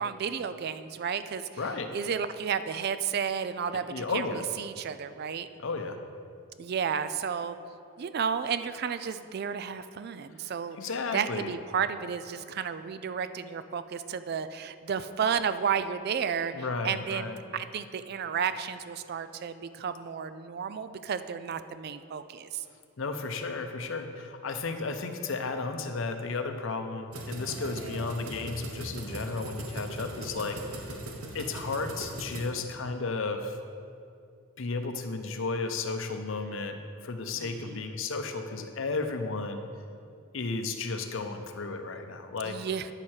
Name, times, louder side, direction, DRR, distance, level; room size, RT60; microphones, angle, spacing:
voice 1, 0.0-1.5 1.9-4.3 4.6-5.5 6.6-7.6 8.0-10.8 11.1-22.6 30.0-30.3 37.3-37.8 42.4-42.9, right 7 dB, 45° right, 12 dB, 0.3 m, -32 dB
voice 2, 1.6-1.9 3.9-4.4 5.6-6.0 10.8-11.5 16.5-17.4 23.0-31.0 31.3-33.6 34.6-39.6 40.3-42.6, left 3 dB, 60° left, 7 dB, 0.6 m, -33 dB
sound 1, 27.1-32.5, right 1 dB, 80° right, 1.0 m, -39 dB
9.6 x 6.5 x 4.4 m, 2.4 s
head